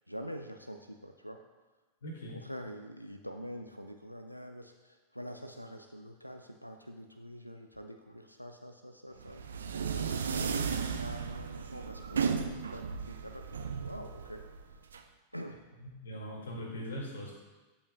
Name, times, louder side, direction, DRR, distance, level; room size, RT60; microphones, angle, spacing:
voice 1, 0.1-1.4 2.3-14.4 15.3-15.6, equal, 90° left, 6 dB, 0.4 m, -46 dB
voice 2, 2.0-2.4 15.8-17.3, equal, 65° left, -1 dB, 2.0 m, -41 dB
sound 1, 9.2-15.0, right 6 dB, 70° right, 0.4 m, -35 dB
13.0 x 5.5 x 2.3 m, 1.2 s
figure-of-eight pair, 90°, 0 cm